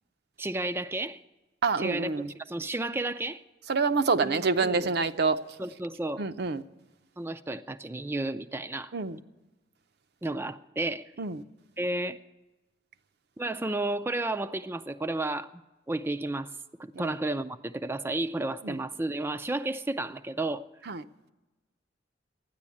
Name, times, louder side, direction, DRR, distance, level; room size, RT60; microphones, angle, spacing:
voice 1, 0.4-1.2 1.8-3.4 4.1-4.9 5.6-6.2 7.2-8.9 10.2-11.0 11.8-12.2 13.4-15.5 15.9-16.5 16.8-20.7, right 2 dB, 15° right, 0.4 m, -32 dB
voice 2, 1.6-2.3 3.7-5.4 6.2-6.6 8.9-9.2 11.2-11.4 16.9-17.1 18.6-18.8 20.9-21.0, right 4 dB, 65° right, 0.6 m, -27 dB
13.5 x 9.8 x 8.4 m
head